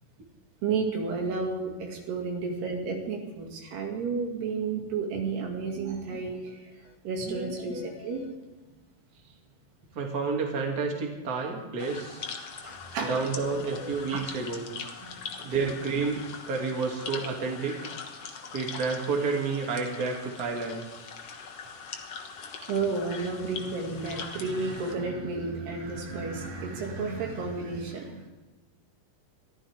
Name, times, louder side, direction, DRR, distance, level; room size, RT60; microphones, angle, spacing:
voice 1, 0.6-6.6 7.0-8.2 11.9-12.0 12.6-13.2 14.1-14.3 15.0-15.3 22.7-28.3, right 4 dB, 75° right, 1 dB, 4.4 m, -32 dB
sound 1, 6.1-6.2 6.5-6.6 6.9-7.0 7.3-8.3 13.0-14.0, left 8 dB, 85° left, 3.4 m, -43 dB
voice 2, 7.2-7.8 9.9-12.2 13.1-14.6 15.4-17.9 18.5-20.8, right 4 dB, 30° right, 0 dB, 2.3 m, -30 dB
sound 2, 11.8-24.9, left 6 dB, 70° left, 1.4 m, -42 dB
23.0 x 15.0 x 3.6 m, 1.2 s
omnidirectional pair, 4.8 m